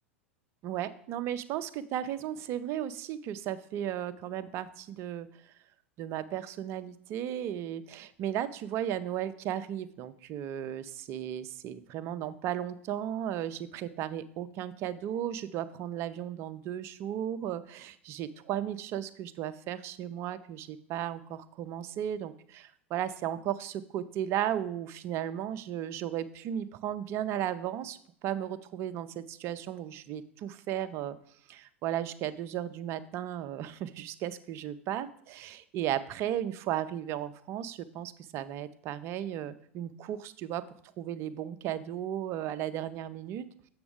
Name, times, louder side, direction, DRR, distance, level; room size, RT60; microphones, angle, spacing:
voice 1, 0.6-5.5 6.0-31.2 31.5-40.6 41.0-43.5, right 11 dB, 40° right, 13 dB, 0.5 m, -35 dB
7.2 x 6.9 x 3.6 m, 0.63 s
figure-of-eight pair, 85°, 7 cm